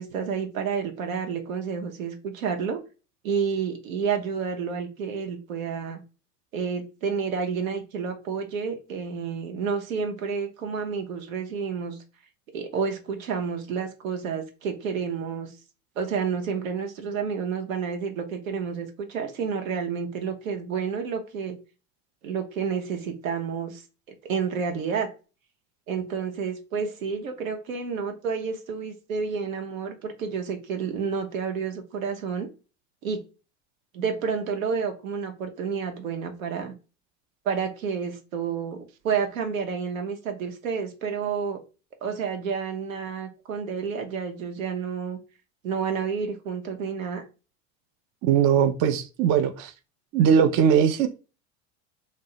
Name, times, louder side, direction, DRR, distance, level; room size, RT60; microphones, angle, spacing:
voice 1, 0.0-2.8 3.2-6.0 6.5-12.0 12.5-15.5 16.0-21.6 22.2-23.8 24.2-25.1 25.9-32.5 33.0-33.2 33.9-36.7 37.4-41.6 42.0-45.2 45.6-47.2, right 6 dB, 85° right, 0.8 m, -30 dB
voice 2, 48.2-49.7 50.1-51.1, right 8 dB, 45° right, 0.5 m, -20 dB
2.6 x 2.0 x 3.8 m
hypercardioid pair, 85°, 39 cm